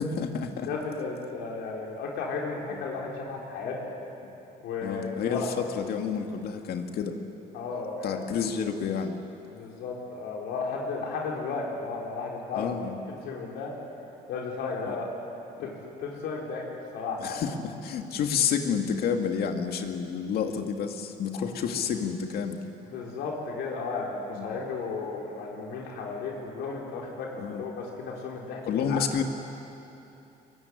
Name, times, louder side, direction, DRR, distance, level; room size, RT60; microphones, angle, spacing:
voice 1, 0.0-0.7 2.7-2.8 4.2-4.3 4.8-7.2 8.0-9.2 12.5-13.0 14.9-15.0 15.6-15.8 17.2-22.6 24.3-24.6 27.4-27.6 28.7-29.2, left 7 dB, 65° left, 4 dB, 2.3 m, -30 dB
voice 2, 0.7-3.9 4.6-5.5 7.5-8.2 9.5-12.7 13.2-13.7 14.3-15.1 15.6-15.7 16.0-17.4 21.3-21.4 22.9-29.0, left 4 dB, 85° left, -2 dB, 4.9 m, -34 dB
22.5 x 22.0 x 9.9 m, 2.9 s
cardioid pair, 110°, 17 cm